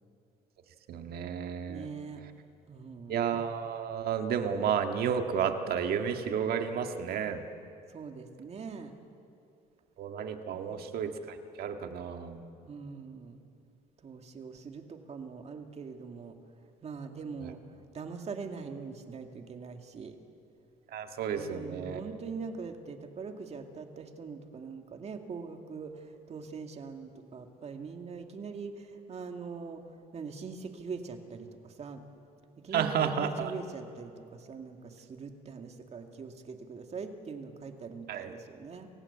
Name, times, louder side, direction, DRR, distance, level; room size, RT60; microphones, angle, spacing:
voice 1, 0.9-1.9 3.1-7.4 10.0-12.4 20.9-22.0 32.7-33.5 38.1-38.3, right 7 dB, 65° right, 6 dB, 1.8 m, -32 dB
voice 2, 1.7-2.2 2.7-3.2 7.9-9.0 10.5-10.9 12.7-13.4 14.0-16.3 16.8-17.6 17.9-20.2 21.3-29.8 30.1-32.0 32.6-38.9, right 5 dB, 40° right, 5 dB, 2.1 m, -42 dB
28.0 x 16.0 x 8.4 m, 2.6 s
cardioid pair, 110°, 17 cm